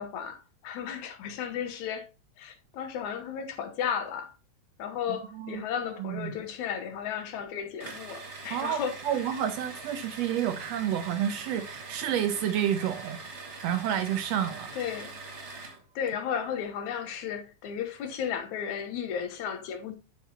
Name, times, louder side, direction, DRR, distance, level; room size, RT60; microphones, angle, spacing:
voice 1, 0.0-2.1 2.4-4.3 4.8-9.0 14.8-15.2 16.0-19.9, left 8 dB, 80° left, 2.5 m, -34 dB
voice 2, 6.0-6.3 8.5-13.2 13.6-14.7, right 10 dB, 75° right, 1.6 m, -30 dB
sound 1, 7.8-15.8, right 3 dB, 60° right, 0.7 m, -43 dB
11.5 x 4.6 x 2.8 m
omnidirectional pair, 3.4 m